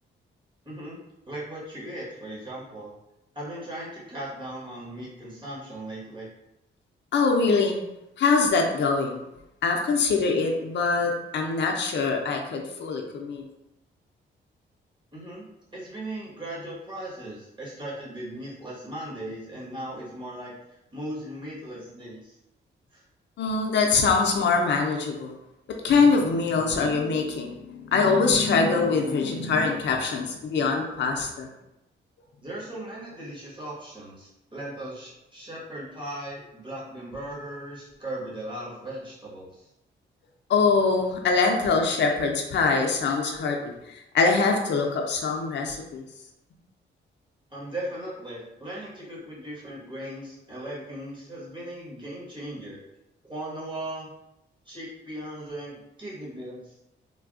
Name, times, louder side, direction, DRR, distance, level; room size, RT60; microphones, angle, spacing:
voice 1, 0.6-1.0 1.3-2.9 3.3-6.3 15.1-15.5 15.7-22.4 22.9-23.0 32.4-39.7 47.5-52.8 53.2-54.1 54.6-56.8, right 1 dB, 25° right, -7 dB, 1.4 m, -38 dB
voice 2, 7.1-7.8 8.2-9.2 9.6-13.4 23.4-25.3 25.8-31.5 40.5-46.0, left 4 dB, 65° left, 2 dB, 0.5 m, -23 dB
3.3 x 2.2 x 2.5 m, 0.88 s
cardioid pair, 90°, 20 cm